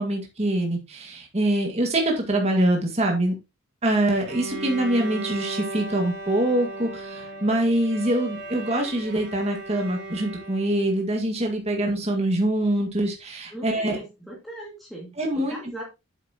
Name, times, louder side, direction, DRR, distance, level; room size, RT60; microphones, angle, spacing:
voice 1, 0.0-3.3 3.8-14.0 15.2-15.8, right 1 dB, 30° right, 2 dB, 1.9 m, -24 dB
Bowed string instrument, 4.2-11.0, right 2 dB, 55° right, 2.7 m, -36 dB
voice 2, 13.5-15.8, right 1 dB, ahead, -5 dB, 2.2 m, -39 dB
8.3 x 7.8 x 2.9 m, 0.25 s
head